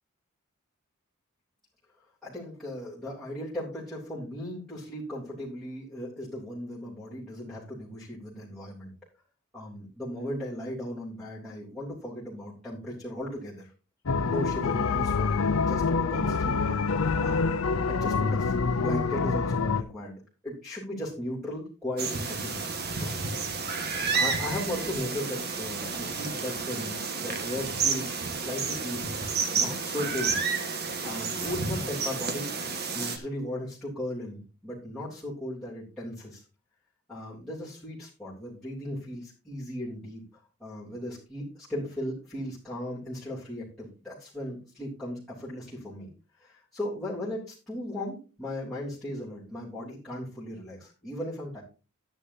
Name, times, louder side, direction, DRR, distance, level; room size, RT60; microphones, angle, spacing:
voice 1, 2.2-8.9 9.5-13.7 14.2-22.6 22.9-23.2 24.0-28.1 28.4-29.1 29.5-30.4 30.7-36.4 37.1-40.2 40.6-46.1 46.4-51.6, left 1 dB, ahead, -10 dB, 3.5 m, -37 dB
sound 1, 14.1-19.8, left 4 dB, 70° left, 0.7 m, -26 dB
sound 2, 22.0-33.2, right 5 dB, 50° right, 1.5 m, -31 dB
12.5 x 10.0 x 2.8 m, 0.33 s
head